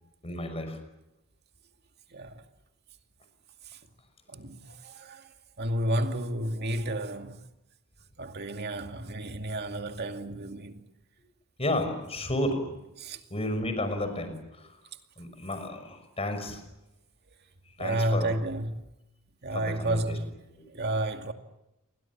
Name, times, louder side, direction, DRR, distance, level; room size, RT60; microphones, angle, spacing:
voice 1, 0.2-0.8 11.6-12.8 13.3-14.8 15.2-16.6 17.8-18.3 19.5-20.1, left 1 dB, 30° left, 6.1 m, -32 dB
voice 2, 2.1-2.4 3.7-3.8 4.3-7.5 8.2-10.9 13.0-13.2 17.8-18.8 19.4-20.4 20.7-21.3, right 1 dB, 50° right, 2.3 m, -31 dB
29.5 x 24.0 x 7.5 m
head